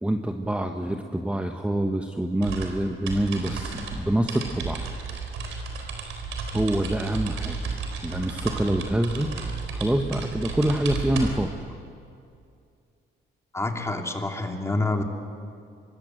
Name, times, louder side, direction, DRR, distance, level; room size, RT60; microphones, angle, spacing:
voice 1, 0.0-4.9 6.5-7.6 8.0-9.3 9.7-11.5, right 1 dB, 5° right, 4 dB, 1.2 m, -26 dB
sound 1, 2.4-11.6, right 4 dB, 85° right, 4.0 m, -33 dB
voice 2, 13.5-15.0, left 2 dB, 15° left, 2 dB, 2.9 m, -27 dB
25.0 x 21.0 x 7.8 m, 2.5 s
cardioid pair, 90°, 20 cm